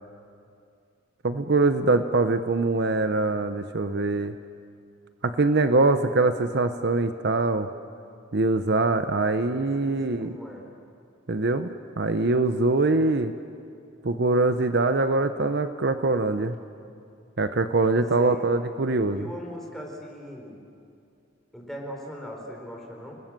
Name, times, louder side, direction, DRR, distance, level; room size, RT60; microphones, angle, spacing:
voice 1, 1.2-4.3 5.2-7.7 8.3-10.3 11.3-13.3 14.0-16.6 17.4-19.3, right 3 dB, 60° right, 9 dB, 0.8 m, -23 dB
voice 2, 9.8-10.7 18.1-18.5 19.0-20.6 21.5-23.2, equal, ahead, -1 dB, 4.5 m, -39 dB
30.0 x 20.0 x 7.5 m, 2.4 s
head